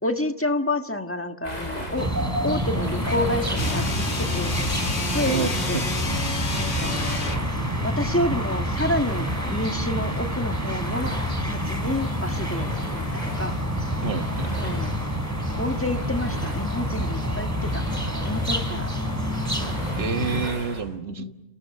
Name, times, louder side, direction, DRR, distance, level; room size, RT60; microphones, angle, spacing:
voice 1, 0.0-2.1 2.4-4.6 5.1-5.9 6.5-7.0 7.8-11.2 11.4-12.7 13.4-13.6 14.6-15.1 15.6-17.8 18.2-18.9 21.2-21.3, left 1 dB, 10° left, 6 dB, 1.5 m, -29 dB
sound 1, 1.4-20.8, left 1 dB, 35° left, 7.8 m, -35 dB
sound 2, 2.0-20.5, equal, 15° right, 4.0 m, -28 dB
sound 3, 3.5-7.5, left 3 dB, 65° left, 2.0 m, -29 dB
voice 2, 5.3-5.9 14.0-14.5 19.9-21.3, right 6 dB, 60° right, 7 dB, 1.7 m, -29 dB
29.5 x 29.0 x 6.6 m, 1.0 s
omnidirectional pair, 1.2 m